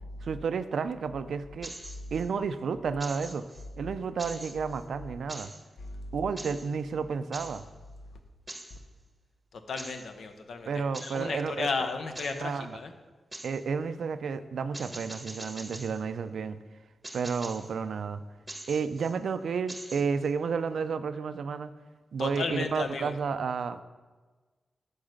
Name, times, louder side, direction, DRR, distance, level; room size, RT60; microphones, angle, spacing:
voice 1, 0.2-1.7 2.1-3.4 3.8-5.5 6.1-7.6 10.7-11.9 12.3-12.8 13.4-16.6 17.1-18.2 18.7-21.7 22.1-23.8, right 5 dB, 75° right, 11 dB, 0.4 m, -31 dB
sound 1, 1.6-2.3 3.0-3.7 4.2-4.8 5.3-5.6 6.4-6.7 7.3-7.6 8.5-8.8 9.8-10.1 10.9-11.3 12.2-12.5 13.3-13.6 14.7-16.0 17.0-17.7 18.5-19.2 19.7-20.3, right 2 dB, 20° right, 0.9 m, -43 dB
voice 2, 9.7-12.9 22.2-23.1, left 4 dB, 70° left, 7 dB, 0.8 m, -34 dB
8.8 x 4.8 x 6.5 m, 1.3 s
wide cardioid pair, 130°, 0 cm